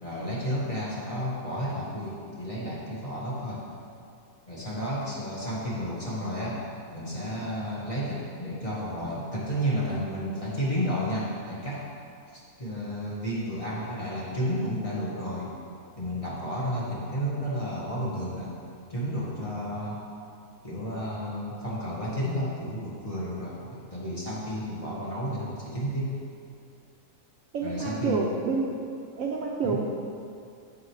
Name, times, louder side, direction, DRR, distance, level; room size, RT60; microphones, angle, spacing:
voice 1, 0.0-3.6 4.5-6.6 6.9-11.8 12.3-15.5 16.0-18.5 18.9-20.0 20.6-26.1 27.6-28.3 29.6-29.8, equal, 20° left, -7 dB, 1.5 m, -32 dB
voice 2, 27.5-28.9 29.2-29.9, right 4 dB, 65° right, 0 dB, 0.9 m, -29 dB
8.2 x 8.0 x 3.2 m, 2.4 s
omnidirectional pair, 1.7 m